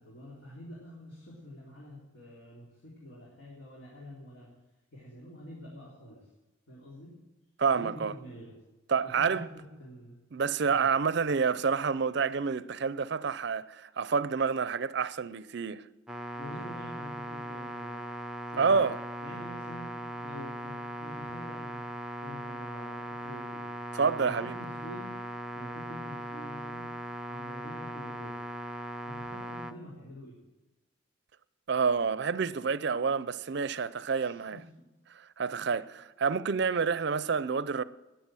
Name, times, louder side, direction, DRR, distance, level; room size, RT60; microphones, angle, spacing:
voice 1, 0.0-4.5 4.9-6.3 6.7-7.2 7.7-8.6 9.0-10.2 10.7-10.9 16.3-18.0 18.5-18.8 19.2-21.9 22.2-23.6 24.2-25.2 25.5-26.9 27.3-28.5 29.0-30.4 34.1-34.7 35.6-35.7, equal, 75° left, 3.4 m, -47 dB
voice 2, 7.6-8.1 8.9-9.5 10.3-15.8 18.6-19.0 23.9-24.5 31.7-34.6 35.1-37.8, right 5 dB, 60° right, 0.5 m, -28 dB
sound 1, 16.1-29.7, right 1 dB, 5° right, 0.5 m, -39 dB
13.0 x 10.0 x 7.5 m
head